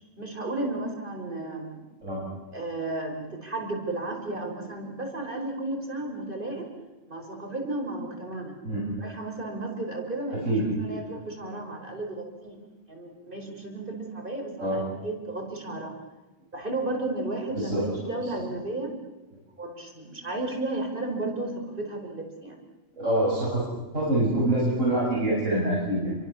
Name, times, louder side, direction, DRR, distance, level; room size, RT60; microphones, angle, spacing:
voice 1, 0.2-1.8 2.5-6.7 7.1-8.5 9.0-10.5 10.8-12.6 12.9-15.9 16.5-18.9 19.6-22.6, right 2 dB, 40° right, 2 dB, 4.9 m, -33 dB
voice 2, 10.5-11.0 14.6-14.8 17.6-17.8 23.0-23.6 23.9-26.2, right 1 dB, 70° right, -6 dB, 7.3 m, -25 dB
29.0 x 24.5 x 7.1 m, 1.2 s
omnidirectional pair, 1.4 m